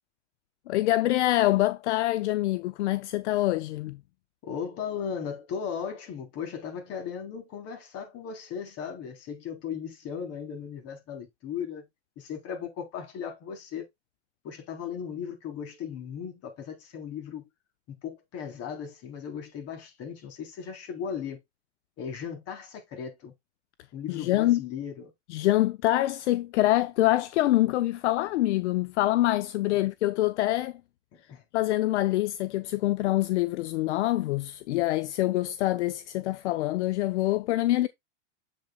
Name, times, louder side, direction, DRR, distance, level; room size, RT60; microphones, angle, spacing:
voice 1, 0.7-4.0 24.1-24.6 25.3-30.7 31.5-37.9, left 16 dB, 70° left, 0.7 m, -25 dB
voice 2, 4.4-11.9 12.2-13.9 14.4-17.5 17.9-21.4 22.0-23.3 23.9-25.1 31.3-31.4, left 7 dB, 40° left, 3.7 m, -37 dB
7.6 x 7.6 x 2.3 m
hypercardioid pair, 120°, 35 cm